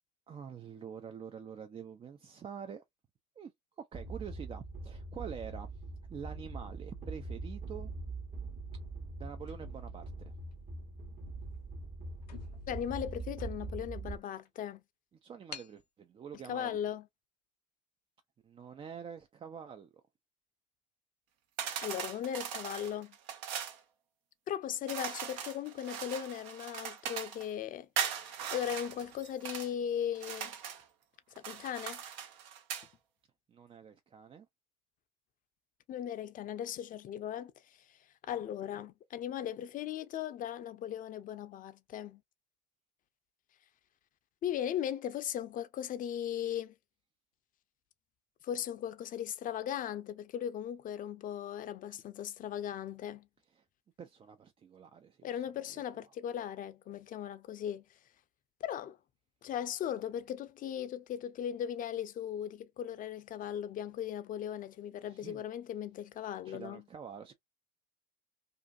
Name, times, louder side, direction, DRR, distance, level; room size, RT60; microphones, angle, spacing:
voice 1, 0.3-2.8 3.4-3.5 3.8-5.7 6.1-7.9 9.2-10.3 15.2-16.7 18.4-20.0 33.5-34.5 53.5-53.6 54.0-55.4 55.7-55.8 65.0-65.4 66.4-67.3, right 7 dB, 25° right, 0.4 m, -46 dB
sound 1, 3.9-14.2, right 3 dB, 45° right, 1.1 m, -42 dB
sound 2, 9.4-10.7 11.4-11.6 11.9-12.0 12.2-14.0 14.4-14.5 15.5-15.8, left 7 dB, 90° left, 0.6 m, -51 dB
voice 2, 12.7-14.8 16.5-17.0 21.8-23.2 24.5-27.9 28.2-30.5 31.4-32.0 35.9-37.8 38.3-42.2 44.4-46.7 48.4-53.3 55.2-57.8 58.6-59.0 59.4-66.8, left 10 dB, 40° left, 0.5 m, -38 dB
sound 3, 21.6-23.8 24.9-27.5 28.0-29.7 30.1-30.8 31.4-32.9, right 8 dB, 65° right, 0.7 m, -39 dB
2.5 x 2.5 x 2.3 m
hypercardioid pair, 65°, 21 cm